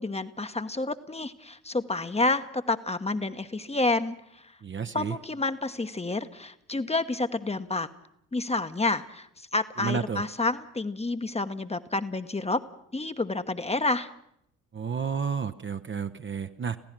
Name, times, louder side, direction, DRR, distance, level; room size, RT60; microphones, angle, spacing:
voice 1, 0.0-4.5 4.9-7.9 8.3-12.6 12.9-14.1, left 2 dB, 15° left, 10 dB, 1.1 m, -29 dB
voice 2, 4.6-5.2 9.8-10.2 14.7-16.8, right 6 dB, 25° right, 8 dB, 0.9 m, -31 dB
27.0 x 16.0 x 6.0 m, 0.73 s
figure-of-eight pair, 50°, 47 cm